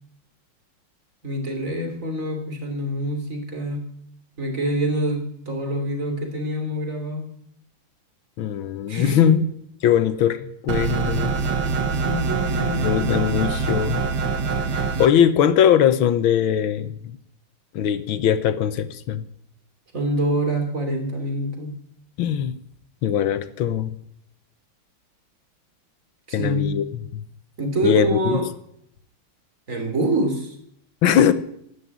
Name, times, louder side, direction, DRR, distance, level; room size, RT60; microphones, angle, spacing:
voice 1, 1.2-3.9 4.4-7.3 8.9-9.4 12.0-13.0 19.9-21.8 26.3-26.8 27.6-28.4 29.7-30.5, right 1 dB, 40° right, 3.3 m, -25 dB
voice 2, 8.4-9.4 9.8-11.3 12.8-14.0 14.7-17.2 17.7-19.2 22.2-22.5 23.0-23.9 26.3-26.8 27.1-27.2 27.8-28.4 31.0-31.3, left 9 dB, 80° left, 1.7 m, -20 dB
sound 1, 10.7-15.1, right 5 dB, 65° right, 2.0 m, -24 dB
12.5 x 11.0 x 9.8 m
omnidirectional pair, 2.2 m